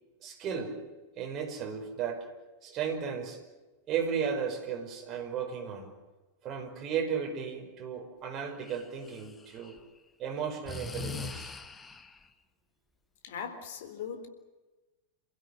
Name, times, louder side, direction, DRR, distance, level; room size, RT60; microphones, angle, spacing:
voice 1, 0.2-0.8 1.2-2.3 2.6-3.4 3.9-5.9 6.4-9.8 10.2-11.5, right 7 dB, 30° right, 3 dB, 5.6 m, -34 dB
Breathing, 8.6-9.8 10.6-12.2, left 4 dB, 15° left, 1.6 m, -41 dB
voice 2, 13.2-14.3, left 7 dB, 55° left, 8 dB, 3.8 m, -39 dB
28.0 x 16.0 x 9.8 m, 1.2 s
figure-of-eight pair, 90°, 0 cm